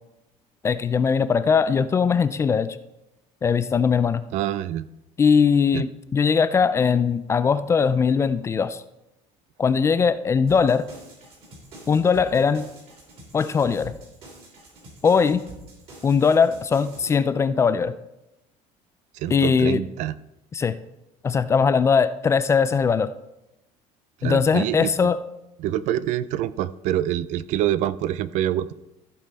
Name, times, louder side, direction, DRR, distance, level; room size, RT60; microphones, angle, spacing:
voice 1, 0.6-2.8 3.4-4.2 5.2-8.8 9.6-10.9 11.9-12.7 13.3-13.9 15.0-15.4 16.0-17.9 19.3-19.8 20.5-20.8 21.2-23.1 24.2-25.2, left 6 dB, 20° left, 13 dB, 0.3 m, -20 dB
voice 2, 4.3-4.9 5.7-5.8 19.1-20.1 24.2-25.1 25.6-28.7, right 12 dB, 60° right, 17 dB, 0.4 m, -26 dB
sound 1, 10.5-17.1, right 1 dB, 45° right, 3.2 m, -45 dB
14.5 x 5.5 x 4.1 m, 0.91 s
cardioid pair, 160°, 14 cm